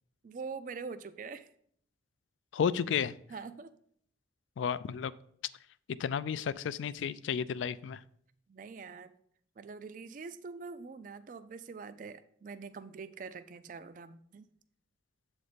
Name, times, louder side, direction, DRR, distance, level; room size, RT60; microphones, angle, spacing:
voice 1, 0.2-1.5 3.3-3.7 8.5-9.1 9.6-14.5, right 5 dB, 45° right, 13 dB, 0.3 m, -44 dB
voice 2, 2.5-3.1 4.6-5.1 6.0-8.0, left 7 dB, 75° left, 16 dB, 0.3 m, -32 dB
7.6 x 4.1 x 5.0 m, 0.65 s
head